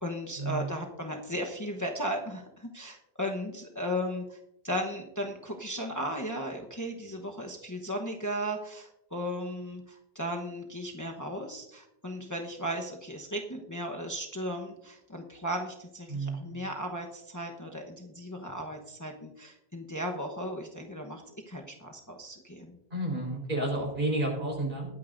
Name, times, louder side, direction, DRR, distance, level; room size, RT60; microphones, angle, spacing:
voice 1, 0.0-4.4 4.6-22.8, equal, 20° left, 1 dB, 1.0 m, -36 dB
voice 2, 16.1-16.5 22.9-24.9, right 2 dB, 55° right, 0 dB, 4.3 m, -31 dB
20.5 x 9.4 x 2.6 m, 0.84 s
omnidirectional pair, 1.0 m